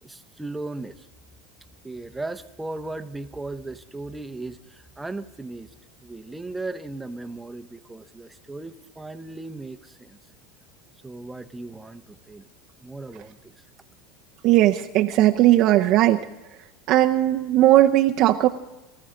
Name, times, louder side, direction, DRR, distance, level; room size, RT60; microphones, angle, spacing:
voice 1, 0.0-1.1 1.8-5.7 6.0-10.2 11.0-12.5 12.8-13.4, right 2 dB, 10° right, 9 dB, 0.9 m, -36 dB
voice 2, 14.4-16.3 16.9-18.5, right 14 dB, 55° right, 3 dB, 0.7 m, -18 dB
23.5 x 13.5 x 3.8 m, 1.0 s
supercardioid pair, 110°, 0 cm